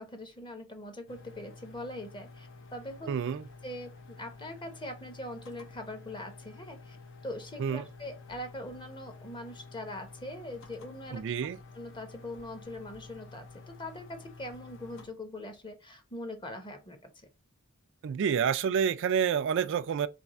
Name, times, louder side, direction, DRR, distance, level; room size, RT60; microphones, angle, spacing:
voice 1, 0.0-3.1 3.6-7.0 7.2-11.2 11.7-17.1, left 1 dB, 25° left, 0.9 m, -42 dB
sound 1, 1.1-15.1, left 3 dB, 65° left, 0.9 m, -50 dB
voice 2, 3.1-3.4 7.6-7.8 11.1-11.6 18.0-20.1, right 7 dB, 60° right, 0.3 m, -28 dB
3.4 x 3.3 x 4.1 m
head